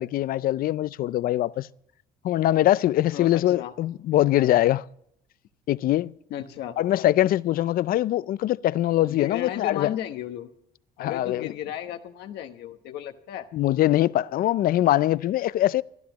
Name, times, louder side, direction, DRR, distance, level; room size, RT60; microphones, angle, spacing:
voice 1, 0.0-1.7 2.2-4.8 5.7-6.1 6.8-9.9 11.0-11.5 13.5-15.8, left 14 dB, 60° left, 0.5 m, -22 dB
voice 2, 3.1-3.7 6.3-6.8 9.1-10.5 11.0-13.5, left 11 dB, 80° left, 1.1 m, -34 dB
26.5 x 12.5 x 3.0 m
cardioid pair, 110°, 17 cm